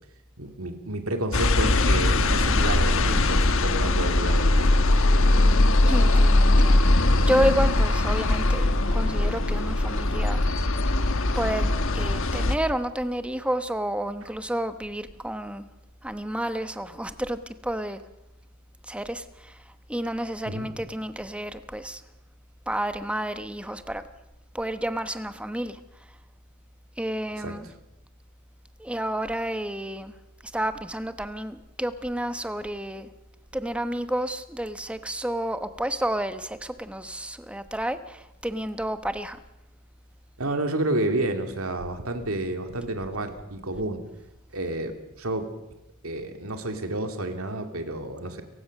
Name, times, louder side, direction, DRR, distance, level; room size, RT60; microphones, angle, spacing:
voice 1, 0.4-5.0 20.4-20.7 27.4-27.5 40.4-44.0 44.5-45.5 46.0-48.4, right 1 dB, 70° right, 6 dB, 2.6 m, -30 dB
sound 1, 1.3-12.6, left 2 dB, 60° left, 1.3 m, -21 dB
voice 2, 5.8-10.4 11.3-15.7 16.0-18.0 18.9-22.0 22.7-24.0 24.5-25.8 27.0-27.7 28.8-30.1 30.5-33.1 33.5-39.4, right 1 dB, 5° right, 10 dB, 1.0 m, -30 dB
29.0 x 16.0 x 6.6 m, 0.93 s
head